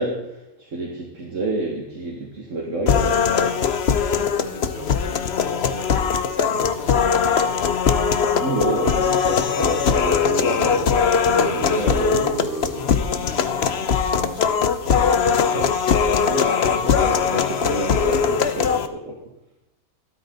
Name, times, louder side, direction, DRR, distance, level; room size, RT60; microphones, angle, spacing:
voice 1, 0.0-3.6 8.4-12.2 15.5-15.7 16.3-19.2, right 2 dB, 55° right, -2 dB, 2.3 m, -29 dB
sound 1, 2.9-18.9, left 6 dB, 50° left, 1.0 m, -20 dB
voice 2, 3.9-7.4 11.4-16.2, equal, 35° right, -3 dB, 4.2 m, -36 dB
13.5 x 12.5 x 4.0 m, 0.88 s
omnidirectional pair, 1.6 m